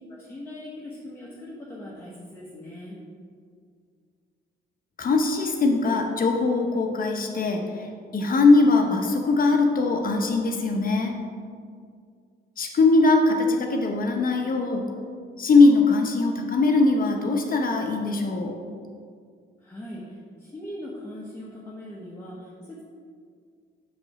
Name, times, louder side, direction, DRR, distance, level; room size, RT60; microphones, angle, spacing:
voice 1, 0.1-3.0 19.6-22.8, left 1 dB, 10° left, -5 dB, 1.1 m, -40 dB
voice 2, 5.0-11.2 12.6-14.8 15.4-18.6, left 3 dB, 45° left, 3 dB, 0.9 m, -21 dB
6.0 x 4.8 x 4.9 m, 2.1 s
cardioid pair, 90°, 20 cm